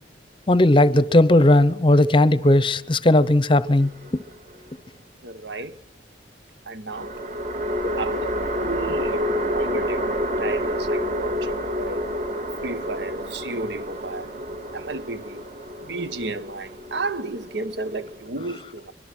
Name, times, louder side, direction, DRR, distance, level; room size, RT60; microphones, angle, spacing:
voice 1, 0.5-3.9, left 1 dB, 30° left, 0.8 m, -16 dB
sound 1, 3.8-4.7 6.9-18.3, equal, 40° right, 2.2 m, -29 dB
voice 2, 5.2-5.8 6.7-7.1 7.8-8.3 8.6-9.3 9.5-10.1 10.4-12.0 12.6-14.4 14.7-15.4 15.8-18.9, right 3 dB, 75° right, 1.2 m, -32 dB
24.0 x 23.5 x 6.1 m
head